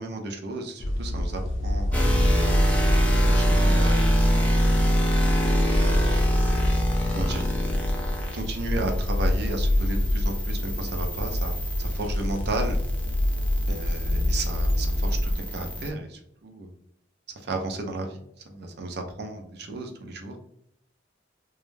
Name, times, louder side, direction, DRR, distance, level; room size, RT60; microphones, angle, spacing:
voice 1, 0.0-2.5 3.2-4.7 5.8-6.0 7.1-7.4 8.3-11.5 11.8-12.8 13.7-16.7 17.4-20.4, right 2 dB, 55° right, 3 dB, 0.4 m, -34 dB
sound 1, 0.8-15.4, left 1 dB, 85° left, 0.4 m, -27 dB
sound 2, 1.9-15.9, equal, 5° left, 0.3 m, -25 dB
2.2 x 2.0 x 3.1 m, 0.73 s
head